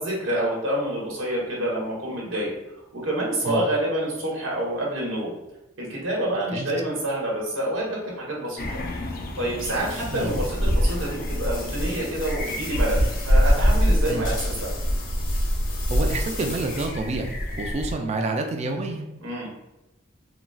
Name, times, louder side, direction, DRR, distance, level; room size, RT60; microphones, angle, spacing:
voice 1, 0.0-2.6 2.9-5.3 5.8-8.8 9.4-14.7 19.2-19.5, right 1 dB, 85° right, -4 dB, 1.0 m, -27 dB
sound 1, 8.6-17.9, equal, 50° left, 0.4 m, -25 dB
sound 2, 9.6-17.1, left 4 dB, 85° left, 0.7 m, -40 dB
voice 2, 15.9-19.1, right 2 dB, 35° right, 4 dB, 0.3 m, -28 dB
3.7 x 2.0 x 2.3 m, 0.94 s
head